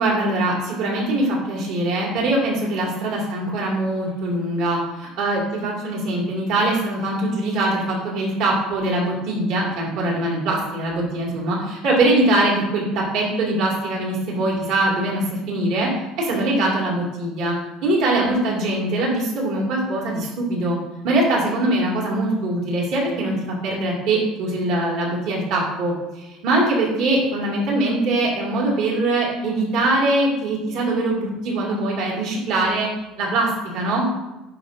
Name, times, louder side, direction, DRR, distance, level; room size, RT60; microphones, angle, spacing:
voice 1, 0.0-15.9 16.2-17.6 17.8-20.8 21.0-23.4 23.6-32.9 33.2-34.0, right 2 dB, 60° right, -3 dB, 2.5 m, -22 dB
10.5 x 5.0 x 2.7 m, 1.0 s
cardioid pair, 165°, 0 cm